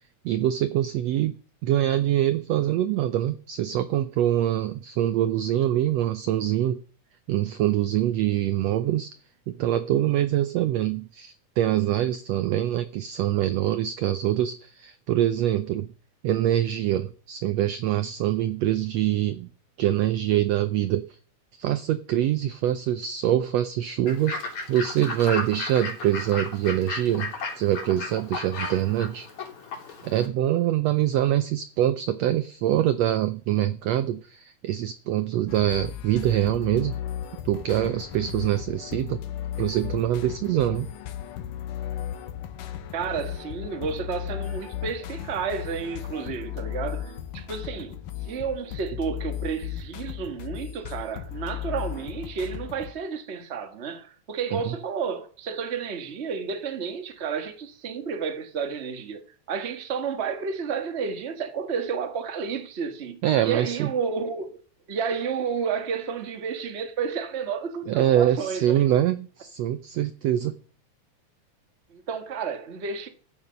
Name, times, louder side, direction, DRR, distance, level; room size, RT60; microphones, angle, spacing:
voice 1, 0.2-1.3 1.6-6.8 7.3-9.1 9.5-15.9 16.2-19.5 19.8-21.1 21.6-24.4 24.7-29.3 30.0-37.0 37.4-39.2 39.6-40.9 54.6-54.7 63.2-63.9 67.9-70.6, right 12 dB, 75° right, 1.5 m, -24 dB
Fowl / Bird, 24.1-30.3, left 3 dB, 65° left, 4.3 m, -34 dB
sound 1, 35.5-52.9, left 11 dB, 85° left, 2.7 m, -35 dB
voice 2, 42.9-59.2 59.5-64.6 64.9-68.8 71.9-73.1, right 6 dB, 30° right, 1.2 m, -31 dB
13.5 x 9.0 x 5.2 m
omnidirectional pair, 3.6 m